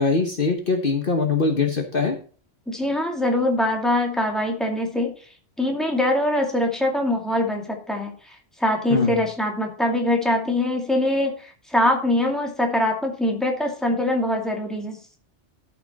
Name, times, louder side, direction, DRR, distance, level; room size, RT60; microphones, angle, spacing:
voice 1, 0.0-2.2 8.9-9.1, left 4 dB, 50° left, 4 dB, 1.4 m, -22 dB
voice 2, 2.7-5.1 5.6-15.0, left 1 dB, ahead, 1 dB, 2.3 m, -23 dB
12.5 x 5.9 x 4.1 m, 0.39 s
omnidirectional pair, 1.2 m